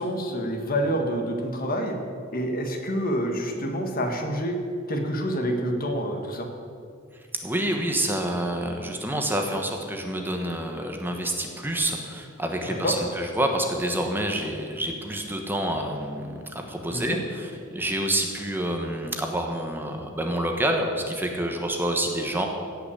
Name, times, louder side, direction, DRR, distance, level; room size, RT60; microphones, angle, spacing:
voice 1, 0.0-2.0 2.3-4.6 4.9-6.5 12.7-13.0 16.9-17.2, equal, 45° left, 3 dB, 1.7 m, -27 dB
voice 2, 7.4-22.5, right 1 dB, 10° right, 3 dB, 1.2 m, -28 dB
16.5 x 5.9 x 8.5 m, 2.3 s
head